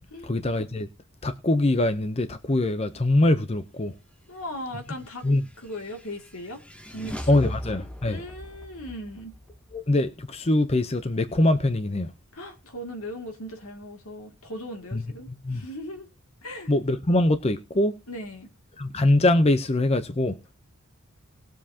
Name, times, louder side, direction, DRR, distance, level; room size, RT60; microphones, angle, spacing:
voice 1, 0.2-0.9 1.2-3.9 5.2-5.4 7.3-8.2 9.7-12.1 14.9-15.0 15.4-15.6 16.7-17.9 18.8-20.4, left 1 dB, 30° left, 0.7 m, -23 dB
voice 2, 4.3-5.3 5.6-7.4 8.1-9.4 12.3-16.1 16.4-16.7 18.1-18.5, left 1 dB, 80° left, 2.4 m, -38 dB
sound 1, 5.0-10.6, equal, 5° left, 1.0 m, -40 dB
20.0 x 7.5 x 2.8 m
head